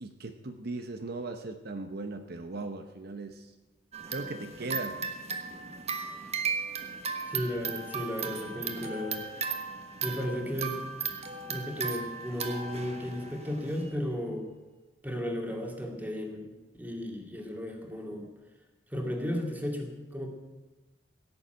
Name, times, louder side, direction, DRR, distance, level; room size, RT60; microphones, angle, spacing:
voice 1, 0.0-3.5 4.1-5.0, right 2 dB, 55° right, 6 dB, 0.9 m, -38 dB
sound 1, 3.9-13.9, right 5 dB, 35° right, 1.3 m, -36 dB
voice 2, 7.2-9.6 10.0-10.8 11.5-14.5 15.0-18.3 18.9-20.3, equal, 10° right, 1 dB, 2.3 m, -34 dB
16.5 x 7.2 x 9.0 m, 1.2 s
head